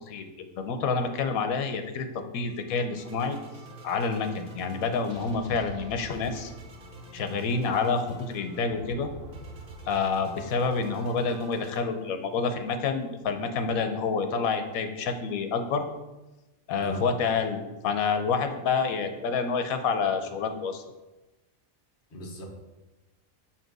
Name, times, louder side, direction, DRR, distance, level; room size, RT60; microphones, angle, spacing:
voice 1, 0.1-3.4 3.8-6.5 7.1-9.1 9.9-15.8 16.7-20.8, left 5 dB, 90° left, 7 dB, 1.2 m, -28 dB
sound 1, 2.5-11.9, equal, 40° right, 1.3 m, -46 dB
voice 2, 16.8-17.1 22.1-22.5, equal, 45° left, 1 dB, 1.1 m, -37 dB
7.3 x 2.8 x 6.0 m, 1.1 s
omnidirectional pair, 1.4 m